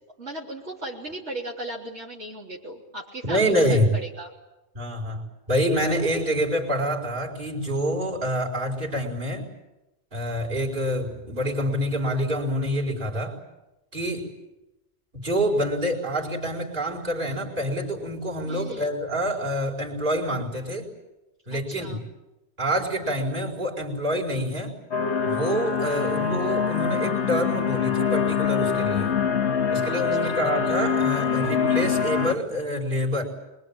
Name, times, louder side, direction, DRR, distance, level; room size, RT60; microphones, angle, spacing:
voice 1, 0.2-4.3 18.5-18.9 21.5-22.0 25.8-26.1 29.9-30.4, right 1 dB, 80° right, -4 dB, 4.0 m, -37 dB
voice 2, 3.2-3.9 4.7-9.5 10.1-13.4 13.9-14.3 15.1-20.9 21.5-22.0 22.6-24.8 25.2-29.1 29.7-33.2, equal, 50° right, -2 dB, 5.0 m, -26 dB
sound 1, 24.9-32.3, left 6 dB, 75° left, 1.4 m, -24 dB
26.5 x 22.5 x 8.8 m, 0.98 s
omnidirectional pair, 1.1 m